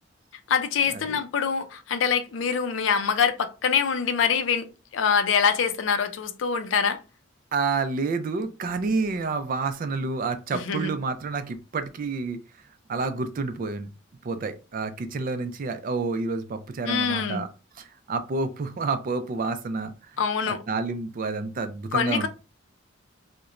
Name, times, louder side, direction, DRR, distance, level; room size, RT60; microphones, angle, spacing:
voice 1, 0.5-4.7 4.9-7.0 10.5-10.9 16.9-17.5 20.2-20.6 21.9-22.3, left 6 dB, 80° left, 0.4 m, -24 dB
voice 2, 7.5-12.4 12.9-13.9 14.2-17.5 17.8-19.9 20.5-22.3, right 4 dB, 45° right, 0.4 m, -29 dB
2.9 x 2.1 x 2.4 m
head